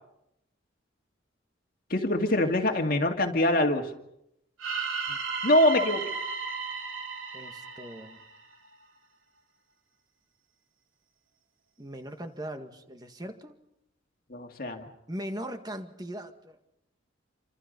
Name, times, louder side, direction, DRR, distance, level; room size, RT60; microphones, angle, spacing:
voice 1, 1.9-3.9 5.4-6.0 14.3-14.9, left 1 dB, 45° left, 3 dB, 2.2 m, -24 dB
sound 1, 4.6-8.7, right 4 dB, 90° right, 2.9 m, -34 dB
voice 2, 7.3-8.2 11.8-13.6 15.1-16.6, equal, 20° right, 6 dB, 2.0 m, -39 dB
28.0 x 26.5 x 5.4 m, 0.80 s
head